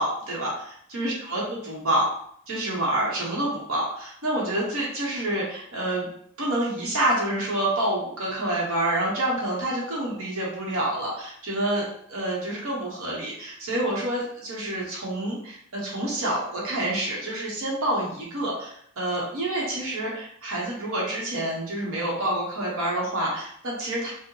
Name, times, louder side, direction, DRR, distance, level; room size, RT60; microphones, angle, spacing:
voice 1, 0.0-1.4 1.7-2.1 2.5-6.1 6.4-24.1, right 1 dB, 65° right, -4 dB, 0.9 m, -28 dB
4.6 x 2.1 x 3.1 m, 0.65 s
head